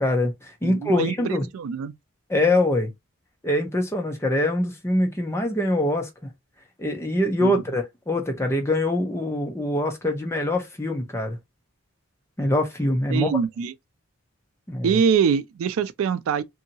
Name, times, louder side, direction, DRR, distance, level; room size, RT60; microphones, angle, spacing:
voice 1, 0.0-1.5 2.3-2.9 3.4-6.1 6.8-11.4 12.4-13.3 14.7-15.0, left 1 dB, 10° left, 0.6 m, -24 dB
voice 2, 0.6-1.9 7.4-7.5 13.1-13.7 14.8-16.4, right 7 dB, 75° right, 0.3 m, -24 dB
2.7 x 2.7 x 2.7 m
head